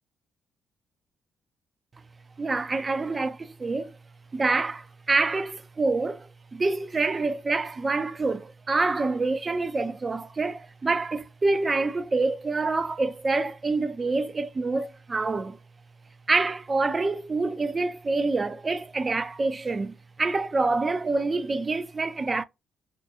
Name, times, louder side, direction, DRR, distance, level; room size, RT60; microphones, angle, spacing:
voice 1, 2.4-4.0 4.3-15.6 16.3-22.4, right 3 dB, 35° right, 0.4 m, -26 dB
2.4 x 2.2 x 2.7 m
supercardioid pair, 55°, 0 cm